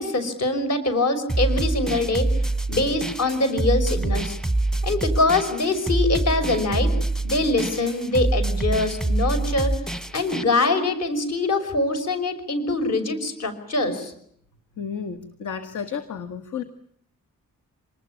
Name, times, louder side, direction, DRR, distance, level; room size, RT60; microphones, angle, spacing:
voice 1, 0.0-2.3 2.7-4.3 4.8-6.9 7.2-9.7 10.1-14.1, left 2 dB, 50° left, 8 dB, 5.7 m, -23 dB
sound 1, 1.3-10.4, right 2 dB, ahead, 1.0 m, -25 dB
voice 2, 14.8-16.6, left 7 dB, 70° left, 9 dB, 1.9 m, -32 dB
27.0 x 20.0 x 8.8 m, 0.69 s
wide cardioid pair, 175°, 32 cm